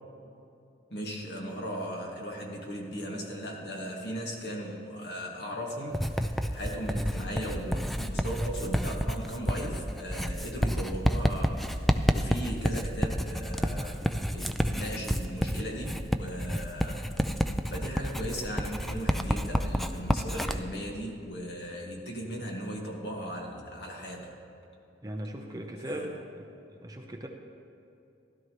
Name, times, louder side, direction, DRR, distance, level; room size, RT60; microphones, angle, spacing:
voice 1, 0.9-14.1 14.3-17.4 17.7-24.3 25.8-26.1, equal, 65° left, -1 dB, 1.9 m, -37 dB
Writing, 5.9-20.6, equal, ahead, 0.3 m, -29 dB
voice 2, 25.0-26.1 26.4-27.3, right 1 dB, 20° right, 2 dB, 0.8 m, -38 dB
16.0 x 12.0 x 3.1 m, 2.8 s
head